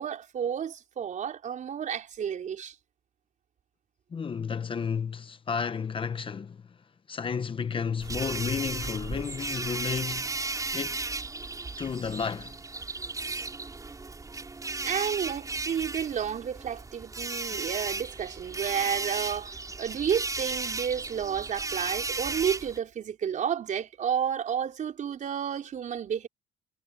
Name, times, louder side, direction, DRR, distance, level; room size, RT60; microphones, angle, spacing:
voice 1, 0.0-2.7 14.8-26.3, right 8 dB, 50° right, 4.7 m, -31 dB
voice 2, 4.1-6.7 7.1-10.3 10.7-11.1 11.8-12.5 17.5-17.6, left 6 dB, 30° left, 1.0 m, -32 dB
sound 1, 8.0-22.8, right 3 dB, 20° right, 5.7 m, -35 dB
cardioid pair, 110°, 17 cm